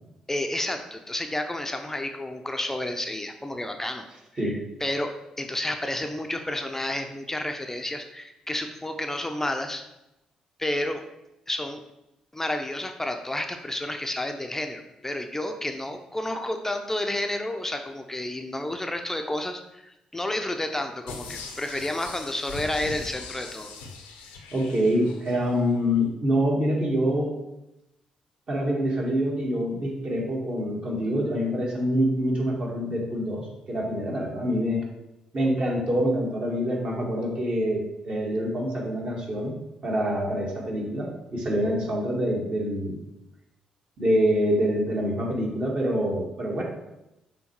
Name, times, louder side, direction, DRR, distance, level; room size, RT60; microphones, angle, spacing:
voice 1, 0.3-4.0 4.3-9.8 10.6-11.0 11.5-11.8 12.3-23.7, left 1 dB, 15° left, 5 dB, 0.6 m, -31 dB
sound 1, 21.1-25.5 25.9-26.0, left 4 dB, 70° left, 0.7 m, -40 dB
voice 2, 24.5-27.3 28.5-34.8 35.3-39.6 39.8-43.0 44.0-46.6, equal, 40° right, -2 dB, 1.9 m, -26 dB
6.2 x 3.5 x 4.6 m, 0.90 s
figure-of-eight pair, 40°, 3 cm